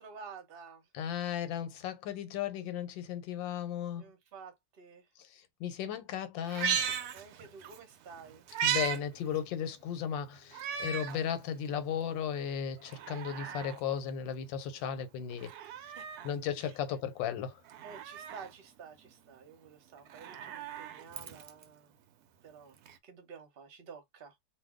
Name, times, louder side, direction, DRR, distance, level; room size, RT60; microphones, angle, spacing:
voice 1, 0.0-0.8 4.0-5.0 7.1-8.4 15.4-15.6 15.9-16.3 16.6-16.7 17.8-21.9 22.4-22.8 23.0-24.3, right 5 dB, 45° right, 0.8 m, -51 dB
voice 2, 0.9-4.0 5.3-7.0 8.6-15.5 16.2-17.6, left 8 dB, 90° left, 1.4 m, -35 dB
Meow, 6.4-7.8 8.1-9.0 9.3-9.4 10.5-11.2 11.7-11.8 12.8-13.8 15.3-16.3 17.7-18.5 20.0-21.6 22.9-23.0, right 8 dB, 70° right, 0.9 m, -36 dB
2.6 x 2.6 x 3.5 m
omnidirectional pair, 2.0 m